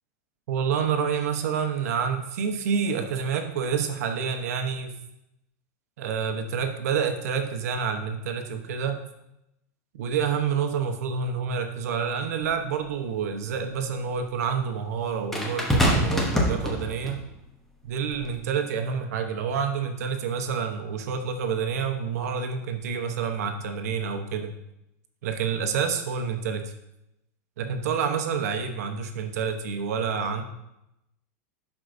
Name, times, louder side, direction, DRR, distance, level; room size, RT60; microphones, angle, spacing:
voice 1, 0.5-4.9 6.0-9.0 9.9-17.2 17.8-24.5 25.2-26.6 27.6-30.4, right 6 dB, 75° right, 6 dB, 0.9 m, -28 dB
sound 1, 12.4-12.5 15.3-17.2 18.1-18.3, equal, 5° left, 0.9 m, -24 dB
11.5 x 4.6 x 2.6 m, 0.85 s
supercardioid pair, 155°, 8 cm